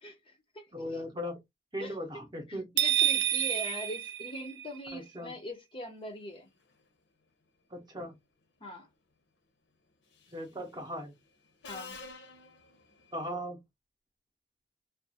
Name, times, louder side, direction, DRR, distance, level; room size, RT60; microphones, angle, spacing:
voice 1, 0.0-1.0 1.8-2.0 2.5-6.5 8.6-8.9 11.7-12.0, left 1 dB, 30° left, 0.5 m, -42 dB
voice 2, 0.7-1.4 1.7-2.7 4.9-5.3 7.7-8.2 10.3-11.1 13.1-13.6, equal, 20° right, 0.7 m, -38 dB
sound 1, 2.8-4.9, right 11 dB, 75° right, 0.3 m, -29 dB
Subway metro underground, 10.1-10.5 11.6-13.3, left 4 dB, 70° left, 0.7 m, -48 dB
2.3 x 2.3 x 2.7 m
head